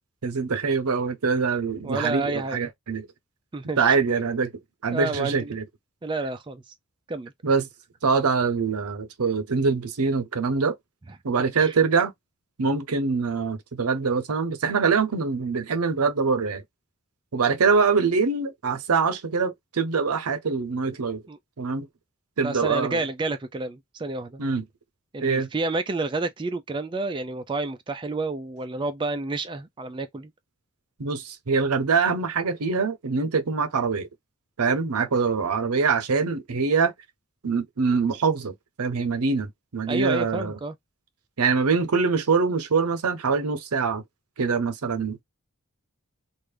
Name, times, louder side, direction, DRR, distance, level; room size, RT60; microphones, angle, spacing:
voice 1, 0.2-3.1 3.8-4.5 4.8-5.6 7.4-7.7 8.0-10.8 11.2-12.1 12.6-16.6 17.3-21.2 21.6-21.9 22.4-23.0 24.4-24.6 25.2-25.5 31.0-34.1 34.6-36.9 37.4-40.5 41.4-44.0 44.4-45.2, right 5 dB, 85° right, 0.7 m, -24 dB
voice 2, 1.8-2.7 3.5-4.0 4.9-5.6 6.0-6.7 7.1-7.3 11.6-11.8 21.3-21.4 22.4-24.4 25.1-30.3 39.9-40.8, right 3 dB, 20° right, 0.4 m, -30 dB
3.3 x 2.5 x 3.3 m
head